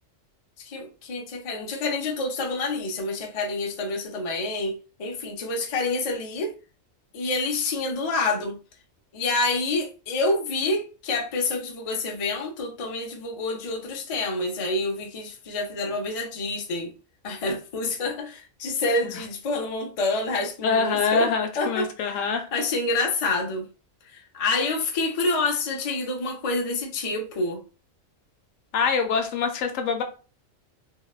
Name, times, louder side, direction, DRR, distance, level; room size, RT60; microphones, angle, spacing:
voice 1, 0.6-6.6 7.1-8.6 9.1-16.9 17.2-22.2 22.5-23.7 24.1-27.6, left 2 dB, 60° left, 0.3 m, -28 dB
voice 2, 20.6-22.5 28.7-30.0, left 5 dB, 75° left, 0.9 m, -24 dB
2.8 x 2.0 x 2.3 m
omnidirectional pair, 1.4 m